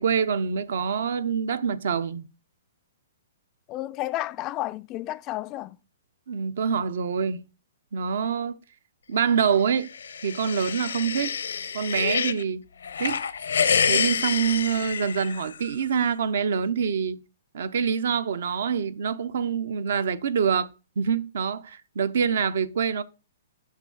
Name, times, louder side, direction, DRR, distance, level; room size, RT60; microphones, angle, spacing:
voice 1, 0.0-2.3 6.3-7.4 7.9-8.6 9.1-9.9 10.2-11.3 11.7-12.6 13.0-13.2 13.9-17.2 17.5-20.7 21.0-23.0, right 6 dB, 65° right, 0.7 m, -25 dB
voice 2, 3.7-5.8, left 16 dB, 25° left, 0.3 m, -31 dB
sound 1, 9.7-12.4 12.8-15.7, left 6 dB, 85° left, 0.7 m, -27 dB
6.4 x 5.9 x 5.3 m
hypercardioid pair, 155°, 0 cm